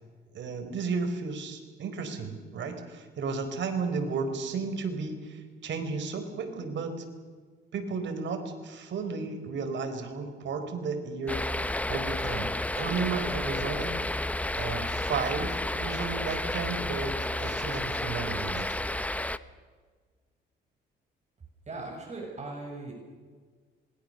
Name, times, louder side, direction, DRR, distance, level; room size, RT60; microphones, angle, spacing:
voice 1, 0.3-7.0 7.7-11.4 11.9-13.9 14.5-18.7, right 4 dB, 65° right, 7 dB, 4.8 m, -33 dB
sound 1, 11.3-19.4, left 1 dB, 5° left, 1.0 m, -31 dB
voice 2, 21.7-22.9, right 2 dB, 35° right, 1 dB, 7.6 m, -39 dB
26.5 x 22.0 x 6.9 m, 1.5 s
cardioid pair, 90°, 20 cm